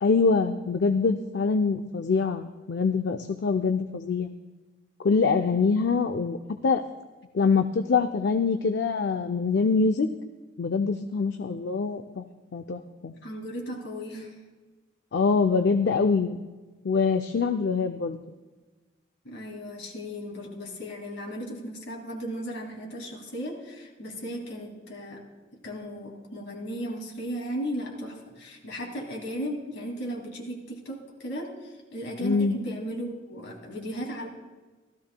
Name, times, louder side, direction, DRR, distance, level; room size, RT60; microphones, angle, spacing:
voice 1, 0.0-4.3 5.0-6.4 6.6-6.8 7.3-10.1 10.6-12.2 12.5-13.1 15.1-16.4 16.8-18.2 32.2-32.6, left 4 dB, 65° left, 7 dB, 0.4 m, -24 dB
voice 2, 13.2-14.4 19.2-25.2 25.6-34.3, equal, 80° left, 0 dB, 2.4 m, -36 dB
16.0 x 13.5 x 2.2 m, 1.3 s
head